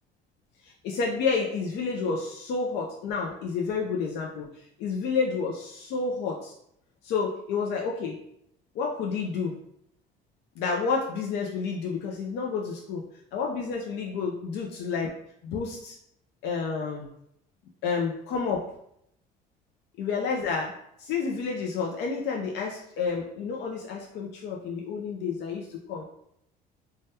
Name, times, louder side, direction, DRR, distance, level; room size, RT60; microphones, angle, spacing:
voice 1, 0.6-4.5 4.8-6.5 7.0-8.2 8.8-9.6 10.6-13.0 13.3-15.1 15.4-16.0 16.4-17.1 17.8-18.7 20.0-26.0, left 5 dB, 80° left, 0 dB, 0.5 m, -30 dB
3.3 x 2.2 x 2.7 m, 0.74 s
cardioid pair, 110°, 17 cm